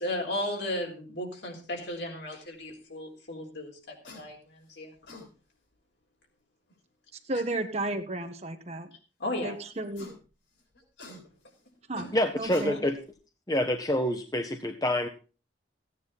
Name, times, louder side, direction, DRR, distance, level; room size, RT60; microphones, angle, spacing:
voice 1, 0.0-4.9 9.2-9.5 12.0-12.1, left 1 dB, 70° left, 1 dB, 3.8 m, -35 dB
sound 1, 4.0-4.3 4.8-5.3 6.7-6.8 9.7-10.2 10.6-11.6 12.3-13.1, left 2 dB, 85° left, 6.6 m, -47 dB
voice 2, 7.2-8.9 9.4-10.1 11.9-12.1 12.4-12.8, right 2 dB, 35° right, 7 dB, 1.2 m, -33 dB
voice 3, 12.1-13.0 13.5-15.1, left 1 dB, 20° left, 6 dB, 0.8 m, -27 dB
15.5 x 9.5 x 4.2 m, 0.34 s
head